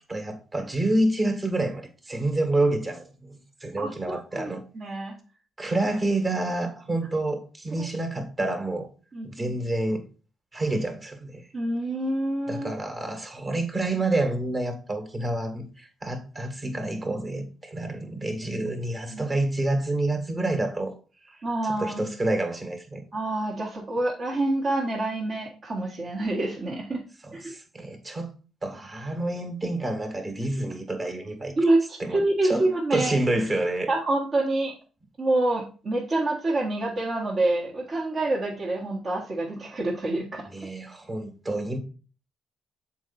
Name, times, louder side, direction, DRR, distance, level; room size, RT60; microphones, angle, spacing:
voice 1, 0.1-4.6 5.6-8.9 9.2-10.0 10.5-11.5 12.5-20.9 21.3-23.1 27.2-28.3 28.6-31.5 32.0-32.7 32.9-33.9 40.5-41.8, right 2 dB, 30° right, 1.9 m, -28 dB
voice 2, 3.8-4.5 4.8-5.1 9.1-9.5 11.5-12.7 19.1-19.3 21.4-22.1 23.1-27.0 27.3-27.5 31.6-33.1 33.9-34.7 35.2-40.5, right 2 dB, 45° right, 1.7 m, -27 dB
7.2 x 4.4 x 4.2 m
cardioid pair, 90°, 0 cm